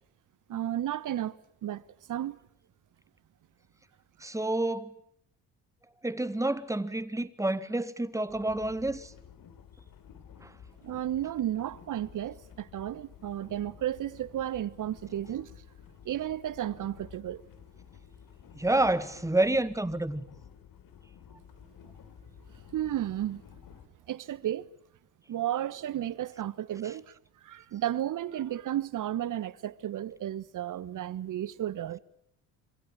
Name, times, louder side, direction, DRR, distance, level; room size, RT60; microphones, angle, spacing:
voice 1, 0.5-1.8 2.1-2.4 10.8-15.5 16.0-17.4 22.7-23.4 24.1-24.7 25.3-27.1 27.4-32.0, right 12 dB, 45° right, 1.3 m, -33 dB
voice 2, 4.2-4.9 6.0-9.1 10.4-10.5 18.6-20.3, right 2 dB, 5° right, 1.9 m, -29 dB
sound 1, 8.3-23.9, left 8 dB, 50° left, 3.6 m, -52 dB
27.0 x 24.5 x 8.8 m
figure-of-eight pair, 50°, 44 cm